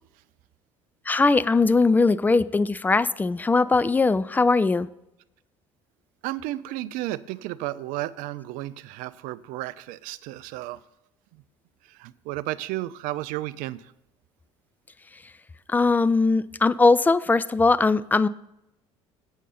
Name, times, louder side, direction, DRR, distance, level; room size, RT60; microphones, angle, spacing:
voice 1, 1.1-4.9 15.7-18.3, left 3 dB, 10° left, 0.3 m, -20 dB
voice 2, 6.2-10.8 12.0-13.8, right 16 dB, 60° right, 0.4 m, -33 dB
8.2 x 6.4 x 5.7 m
hypercardioid pair, 60°, 16 cm